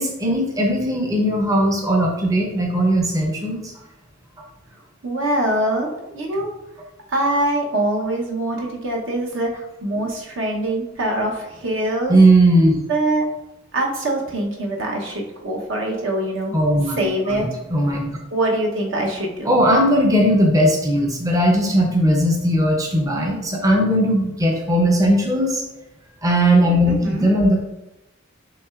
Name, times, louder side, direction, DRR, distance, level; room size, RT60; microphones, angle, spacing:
voice 1, 0.0-3.7 12.1-12.8 16.5-17.4 17.7-18.1 19.4-25.6 26.2-27.6, right 1 dB, 15° right, 0 dB, 0.5 m, -18 dB
voice 2, 5.0-6.5 7.1-12.2 12.9-13.3 13.7-16.5 16.8-17.5 18.3-19.5 26.9-27.3, right 1 dB, 65° right, 0 dB, 0.9 m, -23 dB
5.9 x 3.3 x 2.4 m, 0.92 s
head